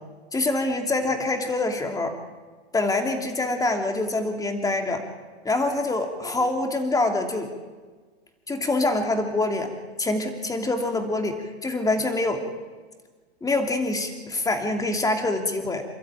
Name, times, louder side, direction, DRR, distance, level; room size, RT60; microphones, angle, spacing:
voice 1, 0.3-2.1 2.7-5.0 5.4-7.5 8.5-9.7 10.0-12.4 13.4-15.8, left 2 dB, 10° left, 4 dB, 2.7 m, -25 dB
28.0 x 12.5 x 9.0 m, 1.4 s
hypercardioid pair, 125°, 33 cm